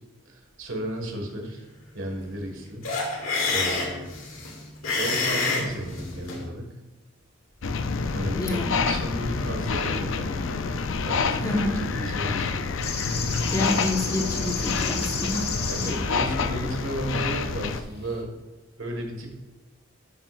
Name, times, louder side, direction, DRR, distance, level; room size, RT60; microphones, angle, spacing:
voice 1, 0.3-1.6 1.9-2.9 3.5-4.1 5.0-6.7 8.1-10.6 11.1-12.7 15.7-18.3 18.8-19.3, right 1 dB, 70° right, 3 dB, 1.9 m, -33 dB
sound 1, 2.8-6.4, left 3 dB, 85° left, 2.3 m, -28 dB
sound 2, 7.6-17.8, left 4 dB, 70° left, 0.5 m, -28 dB
voice 2, 8.4-8.7 11.4-11.8 13.5-15.5, left 1 dB, 15° left, 1 dB, 1.3 m, -28 dB
sound 3, 12.8-18.2, left 5 dB, 50° left, 1.6 m, -34 dB
11.5 x 8.9 x 2.5 m, 1.2 s
head